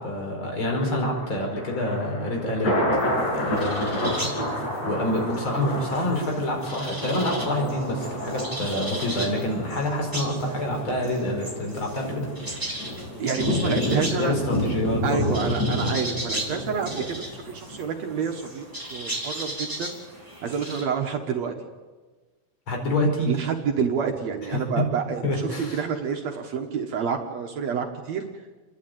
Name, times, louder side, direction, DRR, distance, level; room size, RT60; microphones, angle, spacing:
voice 1, 0.0-2.8 3.3-4.3 4.8-12.3 13.6-13.9 14.1-15.4 22.7-23.3 24.5-24.6 25.2-25.8, left 1 dB, 40° left, 1 dB, 5.5 m, -27 dB
Thunder, 0.7-17.8 18.2-18.3, left 1 dB, 55° left, 7.1 m, -30 dB
sound 1, 3.0-20.8, right 1 dB, 5° right, 4.3 m, -37 dB
voice 2, 13.2-14.3 15.0-19.9 20.4-21.7 23.3-28.3, right 6 dB, 65° right, 3 dB, 2.4 m, -28 dB
29.5 x 11.5 x 9.2 m, 1.3 s
omnidirectional pair, 3.5 m